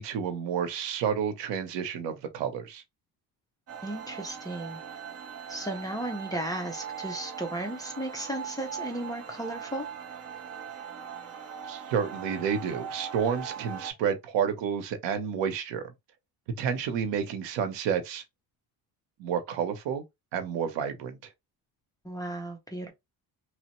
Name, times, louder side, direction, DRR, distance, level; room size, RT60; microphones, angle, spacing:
voice 1, 0.0-2.8 11.7-15.9 16.6-18.2 19.2-20.0 20.3-21.2, right 7 dB, 85° right, 0.8 m, -30 dB
sound 1, 3.7-13.9, right 7 dB, 35° right, 0.7 m, -40 dB
voice 2, 3.8-4.8 5.5-9.9 22.0-22.9, right 1 dB, 10° left, 0.4 m, -35 dB
3.0 x 2.0 x 2.9 m
cardioid pair, 150°, 43 cm